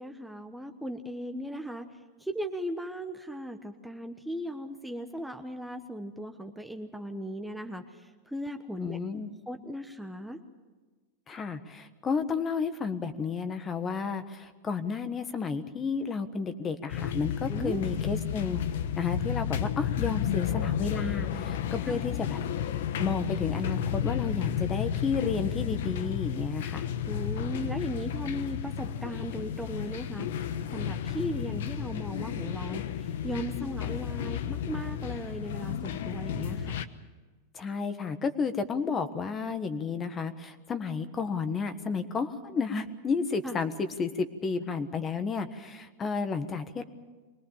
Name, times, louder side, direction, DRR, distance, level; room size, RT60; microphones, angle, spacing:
voice 1, 0.0-1.9 2.2-7.8 8.3-9.0 9.5-10.4 17.5-17.8 21.9-22.0 27.1-30.3 30.7-36.7 43.4-43.6, equal, ahead, 5 dB, 1.1 m, -37 dB
voice 2, 8.8-9.3 11.3-18.6 19.0-22.4 23.0-26.9 37.5-46.8, left 5 dB, 25° left, 10 dB, 1.4 m, -32 dB
sound 1, 16.9-36.9, left 9 dB, 75° left, 1.1 m, -32 dB
24.0 x 19.0 x 7.4 m, 1.3 s
supercardioid pair, 130°, 0 cm